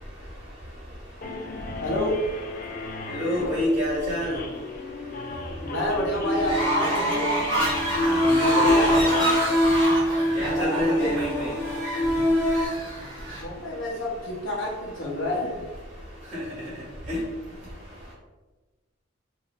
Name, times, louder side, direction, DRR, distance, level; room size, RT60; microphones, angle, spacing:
sound 1, 1.2-9.8, left 2 dB, 40° left, 0.3 m, -37 dB
voice 1, 1.8-2.1 5.6-7.3 10.5-11.1 13.4-15.6, left 1 dB, 60° left, -3 dB, 0.8 m, -29 dB
voice 2, 3.1-4.4 8.0-9.1 10.3-11.5 17.1-17.2, left 1 dB, 35° right, -6 dB, 1.5 m, -27 dB
sound 2, 6.2-12.7, left 1 dB, 10° right, 0.5 m, -24 dB
Fowl, 6.4-13.4, right 1 dB, 20° left, 1.4 m, -28 dB
3.4 x 2.6 x 2.3 m, 1.2 s
head